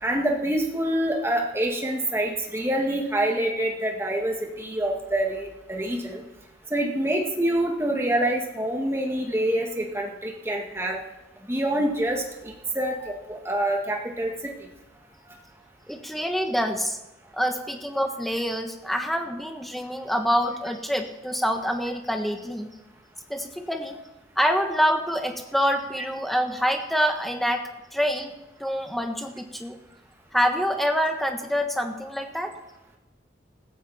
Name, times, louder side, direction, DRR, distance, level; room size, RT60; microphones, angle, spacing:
voice 1, 0.0-6.2 6.7-11.0 11.5-14.5, right 1 dB, 15° right, 1 dB, 2.1 m, -26 dB
voice 2, 15.9-17.0 17.3-22.7 23.3-24.0 24.4-27.6 27.9-28.3 28.6-29.8 30.3-32.5, equal, ahead, 4 dB, 1.4 m, -26 dB
17.0 x 15.0 x 4.3 m, 1.0 s
head